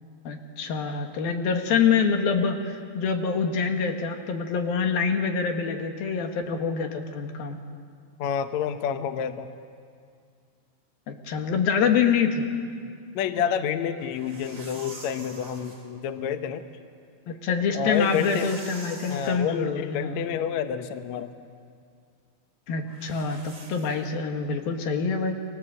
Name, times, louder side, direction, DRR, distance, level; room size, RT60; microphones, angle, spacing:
voice 1, 0.3-7.6 11.1-12.5 17.3-20.4 22.7-25.3, left 5 dB, 85° left, 4 dB, 3.6 m, -26 dB
voice 2, 8.2-9.5 13.1-16.7 17.7-18.6 19.1-21.3, left 8 dB, 65° left, 9 dB, 1.9 m, -29 dB
sound 1, 14.0-15.9 17.7-19.4 22.9-24.1, right 2 dB, 30° right, 4.2 m, -45 dB
29.5 x 24.0 x 7.8 m, 2.2 s
omnidirectional pair, 4.1 m